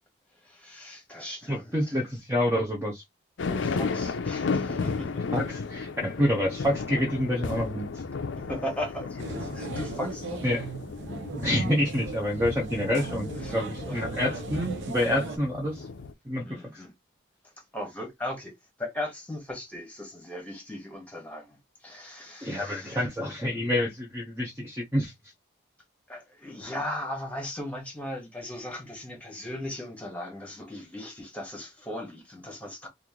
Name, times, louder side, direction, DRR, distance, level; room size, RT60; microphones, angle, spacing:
voice 1, 0.4-2.0 3.5-5.2 8.4-10.5 13.4-13.5 13.8-14.0 16.4-16.9 17.7-18.5 18.8-21.6 21.8-23.0 26.1-32.9, left 1 dB, 5° left, 1.1 m, -37 dB
voice 2, 1.5-3.0 5.3-7.9 10.4-10.6 11.4-15.8 16.3-16.6 22.4-25.1, left 1 dB, 15° right, 0.5 m, -27 dB
sound 1, 3.4-16.1, left 4 dB, 70° left, 0.4 m, -34 dB
sound 2, 9.2-15.4, right 3 dB, 70° right, 0.7 m, -37 dB
3.1 x 2.4 x 3.6 m
head